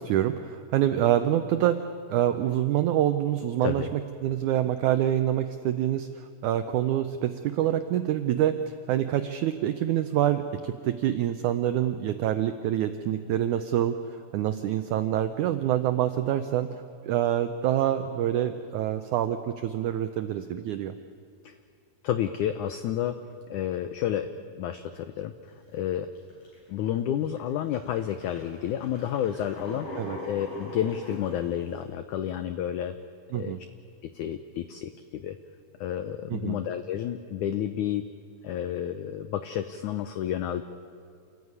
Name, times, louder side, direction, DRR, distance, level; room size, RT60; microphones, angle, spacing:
voice 1, 0.0-1.8 2.1-8.5 8.9-16.7 17.1-20.9 30.0-30.2 33.3-33.6 36.3-36.6, right 11 dB, 90° right, 9 dB, 1.7 m, -26 dB
voice 2, 22.0-23.2 23.5-26.1 26.7-29.9 30.3-33.0 33.3-33.6 34.1-35.4 35.8-38.1 38.4-40.6, left 10 dB, 80° left, 10 dB, 1.7 m, -30 dB
sound 1, 25.5-25.7 26.1-26.7 27.2-27.4 27.7-31.8, left 1 dB, 55° left, 8.1 m, -41 dB
28.0 x 14.5 x 9.6 m, 2.3 s
omnidirectional pair, 4.4 m